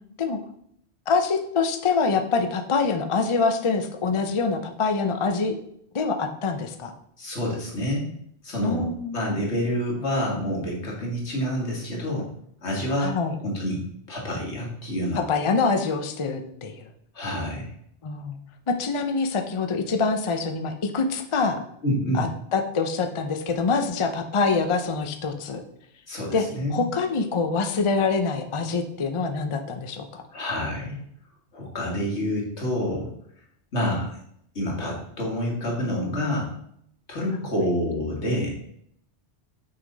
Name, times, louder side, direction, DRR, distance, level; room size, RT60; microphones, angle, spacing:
voice 1, 1.1-5.5 5.9-6.9 8.6-9.2 13.0-13.3 15.3-16.8 18.0-18.4 18.7-21.6 22.1-25.6 26.3-26.4 26.7-30.2, left 4 dB, 35° left, 6 dB, 0.6 m, -25 dB
voice 2, 7.2-8.1 8.4-12.3 12.6-13.1 13.4-13.8 14.1-15.2 17.1-17.7 21.8-22.2 26.1-26.8 30.3-31.0 31.5-33.1 33.7-34.2 34.6-36.5 37.1-38.5, left 1 dB, 85° left, -2 dB, 2.3 m, -27 dB
6.2 x 5.8 x 4.0 m, 0.70 s
omnidirectional pair, 1.1 m